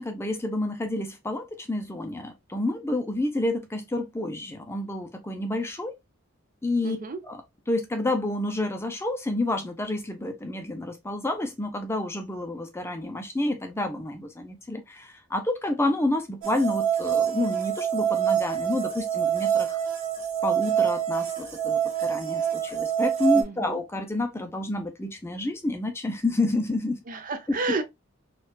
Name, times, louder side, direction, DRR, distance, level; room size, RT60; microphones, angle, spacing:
voice 1, 0.0-5.9 6.6-7.0 7.3-7.4 7.7-19.8 20.4-27.0, left 2 dB, 10° left, 0.5 m, -29 dB
voice 2, 6.8-7.2 23.4-23.8 27.1-27.8, right 3 dB, 40° right, 0.5 m, -31 dB
sound 1, 16.4-23.4, right 9 dB, 80° right, 1.3 m, -26 dB
4.4 x 2.4 x 2.2 m
head